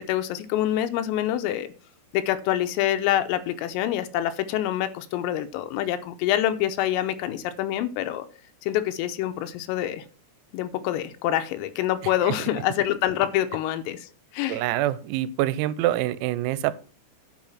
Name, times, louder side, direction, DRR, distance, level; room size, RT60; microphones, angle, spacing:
voice 1, 0.1-1.7 2.1-8.3 8.6-10.0 10.5-14.1 14.3-14.6, left 12 dB, 90° left, 10 dB, 3.4 m, -26 dB
voice 2, 14.5-16.7, right 14 dB, 90° right, 16 dB, 3.4 m, -25 dB
10.5 x 5.8 x 6.0 m, 0.39 s
omnidirectional pair, 6.0 m